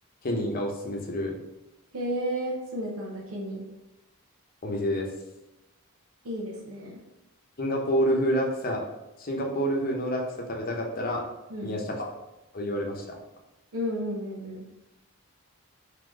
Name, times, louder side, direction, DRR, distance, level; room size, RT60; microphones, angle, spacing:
voice 1, 0.2-1.4 4.6-5.1 7.6-8.8 9.2-11.2 11.6-12.1 12.5-13.0, equal, 40° left, 1 dB, 0.8 m, -28 dB
voice 2, 1.9-3.6 6.2-7.0 11.5-11.8 13.7-14.6, equal, 75° right, -2 dB, 0.9 m, -32 dB
3.9 x 2.9 x 4.7 m, 0.97 s
head